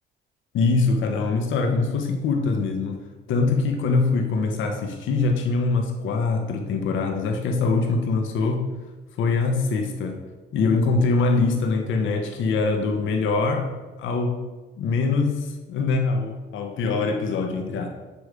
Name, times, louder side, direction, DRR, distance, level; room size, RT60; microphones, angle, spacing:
voice 1, 0.5-3.0 3.3-8.7 9.2-10.2 10.5-13.7 14.0-14.4 14.8-17.9, left 3 dB, 75° left, 4 dB, 0.9 m, -23 dB
6.8 x 3.1 x 4.8 m, 1.2 s
cardioid pair, 90°, 20 cm